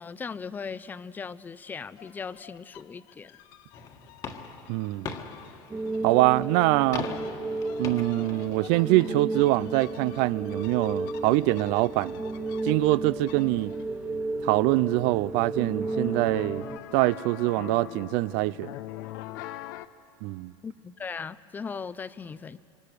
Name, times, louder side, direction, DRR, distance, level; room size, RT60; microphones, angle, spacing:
voice 1, 0.0-3.4 20.6-22.6, left 5 dB, 15° left, 0.5 m, -38 dB
sound 1, 2.0-14.1 15.7-19.9, left 14 dB, 75° left, 0.8 m, -46 dB
sound 2, 3.7-9.1, left 6 dB, 35° left, 1.5 m, -41 dB
voice 2, 4.7-5.1 6.0-7.1 7.8-12.2 12.6-13.7 14.4-16.7 16.9-18.7 20.2-20.5, right 20 dB, 65° right, 0.5 m, -24 dB
sound 3, 5.7-16.8, right 2 dB, 15° right, 1.4 m, -33 dB
26.5 x 24.0 x 6.7 m
cardioid pair, 150°, 11 cm